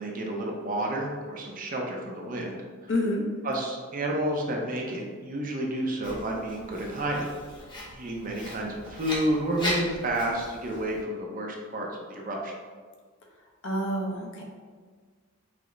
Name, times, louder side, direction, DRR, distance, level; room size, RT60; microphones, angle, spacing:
voice 1, 0.0-2.6 2.8-2.9 3.4-7.3 7.9-12.5, right 1 dB, 35° right, 0 dB, 0.5 m, -30 dB
voice 2, 2.9-3.2 13.6-14.4, left 1 dB, 55° left, 0 dB, 0.7 m, -28 dB
Writing, 6.0-11.0, left 1 dB, 20° left, 0.9 m, -38 dB
4.9 x 2.1 x 3.8 m, 1.5 s
head